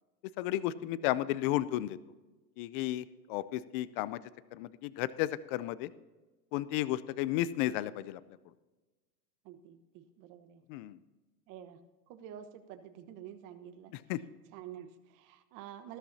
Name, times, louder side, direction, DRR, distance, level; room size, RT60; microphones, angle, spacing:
voice 1, 0.4-2.0 2.6-4.2 4.5-5.9 6.5-8.2 10.7-11.0 13.9-14.2, left 14 dB, 35° left, 18 dB, 0.4 m, -33 dB
voice 2, 9.4-10.6 11.5-11.8 12.1-13.9 14.5-16.0, right 10 dB, 40° right, 9 dB, 1.2 m, -49 dB
14.5 x 13.0 x 2.8 m, 1.2 s
hypercardioid pair, 120°, 50 cm